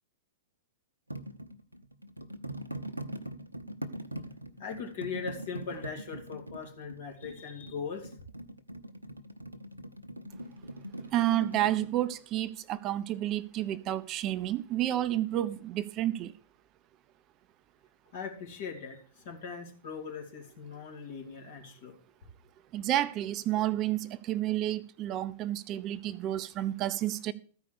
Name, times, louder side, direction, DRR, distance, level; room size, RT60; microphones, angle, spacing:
sound 1, 1.1-11.9, right 1 dB, 90° right, 0.8 m, -41 dB
voice 1, 4.6-8.1 18.1-22.0, left 5 dB, 55° left, 2.7 m, -40 dB
voice 2, 11.1-16.3 22.7-27.3, right 13 dB, 35° right, 0.5 m, -30 dB
13.5 x 5.1 x 6.6 m
figure-of-eight pair, 105°, 0 cm